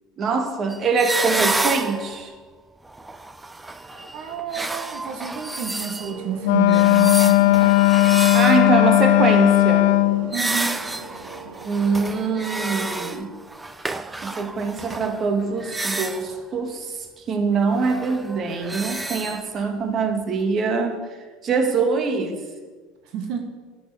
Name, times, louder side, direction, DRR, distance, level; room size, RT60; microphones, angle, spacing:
voice 1, 0.2-2.3 8.3-9.9 11.6-13.4 14.2-17.0 17.3-21.0 21.4-22.4, right 4 dB, 40° right, 5 dB, 1.7 m, -23 dB
sound 1, 0.7-2.3 2.8-6.2 6.7-9.0 10.3-16.4 17.7-19.4, right 2 dB, 15° right, 0.6 m, -30 dB
voice 2, 3.9-7.8 10.3-10.8 23.0-23.4, right 7 dB, 65° right, 3 dB, 1.4 m, -30 dB
sound 2, 6.0-13.2, right 3 dB, 80° right, 2.1 m, -39 dB
Wind instrument woodwind instrument, 6.4-10.3, left 18 dB, 80° left, 0.4 m, -16 dB
10.0 x 7.5 x 6.1 m, 1.4 s
supercardioid pair, 95°, 0 cm